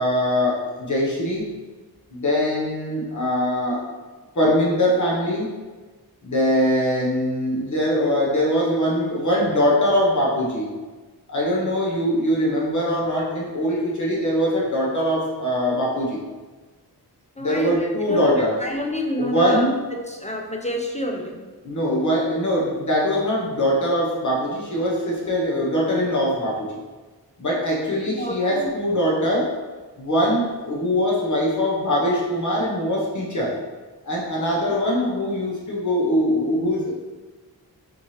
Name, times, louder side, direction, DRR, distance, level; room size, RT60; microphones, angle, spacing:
voice 1, 0.0-1.5 2.1-3.8 4.3-5.5 6.2-10.7 11.3-16.2 17.4-18.6 19.2-19.9 21.6-26.7 27.4-29.5 30.0-33.6 34.0-36.9, equal, 50° left, -4 dB, 1.0 m, -22 dB
voice 2, 17.4-17.8 18.1-19.6 19.9-21.4 28.1-28.7, equal, 20° left, 2 dB, 0.4 m, -28 dB
4.3 x 2.8 x 3.2 m, 1.3 s
wide cardioid pair, 75°, 38 cm